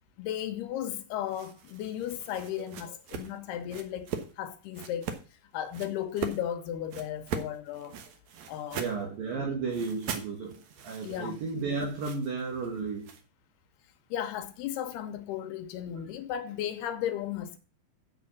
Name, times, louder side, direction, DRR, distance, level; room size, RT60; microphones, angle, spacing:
voice 1, 0.2-4.1 4.4-5.2 5.5-8.0 8.5-8.8 11.0-11.4 14.1-17.6, left 10 dB, 75° left, 2.5 m, -35 dB
sound 1, 1.3-4.3 4.7-5.2 5.7-6.4 6.9-9.0 9.7-13.2, right 7 dB, 85° right, 1.5 m, -40 dB
voice 2, 8.8-13.1, right 4 dB, 60° right, 3.1 m, -33 dB
7.4 x 7.1 x 7.1 m
omnidirectional pair, 5.1 m